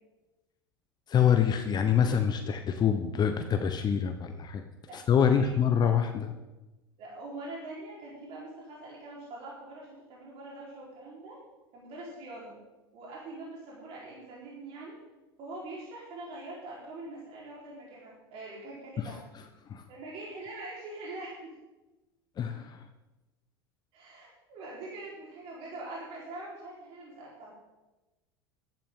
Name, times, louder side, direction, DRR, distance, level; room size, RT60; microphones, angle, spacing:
voice 1, 1.1-4.6 4.9-6.3 19.7-19.8 22.4-22.8, left 8 dB, 30° left, 6 dB, 1.0 m, -25 dB
voice 2, 4.9-5.6 7.0-11.4 11.7-12.6 12.9-15.0 15.4-19.3 19.9-21.6 23.9-27.5, right 2 dB, 45° right, -5 dB, 4.3 m, -43 dB
15.0 x 12.0 x 3.8 m, 1.1 s
figure-of-eight pair, 80°, 13 cm